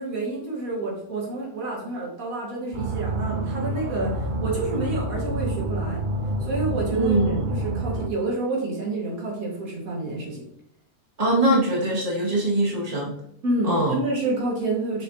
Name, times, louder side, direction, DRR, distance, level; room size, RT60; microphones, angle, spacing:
voice 1, 0.0-6.0 6.4-7.2 7.5-10.4 13.4-15.0, right 2 dB, 70° right, -3 dB, 2.1 m, -29 dB
sound 1, 2.7-8.1, right 1 dB, 50° right, 0.6 m, -28 dB
voice 2, 6.9-7.5 11.2-13.1 13.6-13.9, right 1 dB, 25° right, -4 dB, 2.0 m, -22 dB
6.6 x 6.0 x 2.8 m, 0.72 s
omnidirectional pair, 1.6 m